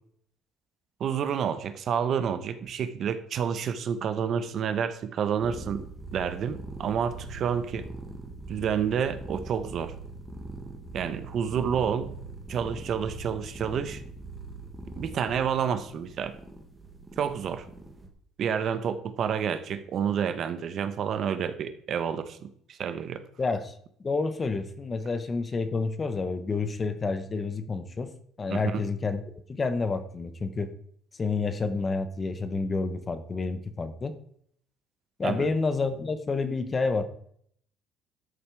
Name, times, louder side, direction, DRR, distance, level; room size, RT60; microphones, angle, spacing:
voice 1, 1.0-5.8 6.1-7.9 8.5-9.9 10.9-12.1 12.5-14.0 15.0-16.4 17.2-17.7 18.4-23.2 28.5-28.8 35.2-35.5, right 7 dB, 40° right, 11 dB, 1.0 m, -29 dB
sound 1, 5.4-18.1, right 2 dB, 10° right, 1.6 m, -42 dB
voice 2, 23.4-23.7 24.0-28.1 28.4-29.2 29.5-30.7 31.2-34.2 35.2-37.0, left 4 dB, 20° left, 11 dB, 0.9 m, -29 dB
12.5 x 7.2 x 4.7 m, 0.65 s
cardioid pair, 165°, 0 cm